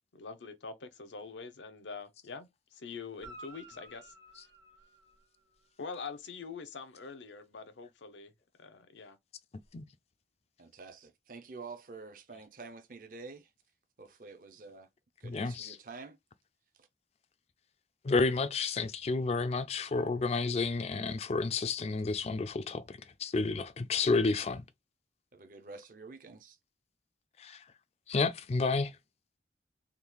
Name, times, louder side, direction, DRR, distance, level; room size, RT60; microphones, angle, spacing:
voice 1, 0.1-4.1 5.8-8.3 8.6-9.2, left 5 dB, 85° left, 0.6 m, -44 dB
Guitar, 3.1-5.7 9.6-9.7, right 2 dB, 65° right, 1.0 m, -53 dB
voice 2, 10.6-13.5 14.0-14.9 15.2-16.2 16.8-16.9 25.3-26.6, right 4 dB, 50° right, 0.5 m, -48 dB
voice 3, 15.2-15.8 18.0-24.6 27.4-27.6 28.1-28.9, left 3 dB, 35° left, 0.3 m, -31 dB
3.5 x 2.3 x 3.0 m
head